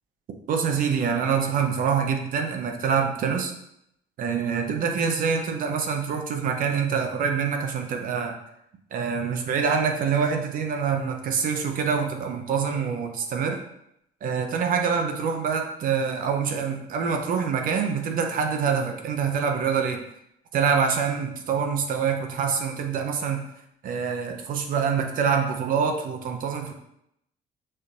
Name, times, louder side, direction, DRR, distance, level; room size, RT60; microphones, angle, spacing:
voice 1, 0.5-3.5 4.2-8.4 8.9-13.6 14.2-20.0 20.5-23.4 23.8-26.7, right 6 dB, 60° right, 4 dB, 0.7 m, -25 dB
6.4 x 2.7 x 2.5 m, 0.78 s
cardioid pair, 110°, 16 cm